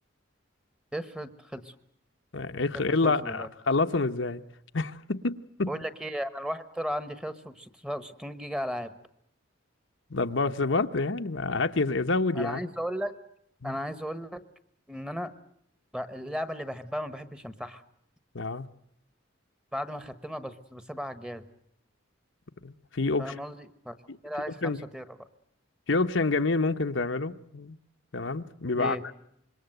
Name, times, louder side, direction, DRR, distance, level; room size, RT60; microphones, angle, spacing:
voice 1, 0.9-1.7 2.7-3.5 5.7-8.9 12.3-13.1 13.6-14.4 14.9-15.3 15.9-17.8 19.7-21.4 23.2-23.9 24.2-25.0 28.7-29.0, equal, 5° right, 1.3 m, -35 dB
voice 2, 2.3-4.4 4.7-5.7 10.1-12.6 13.6-13.8 18.3-18.7 22.6-23.4 24.1-24.2 24.6-24.8 25.9-27.8 28.1-29.0, left 3 dB, 70° left, 1.0 m, -28 dB
26.5 x 22.5 x 7.9 m
head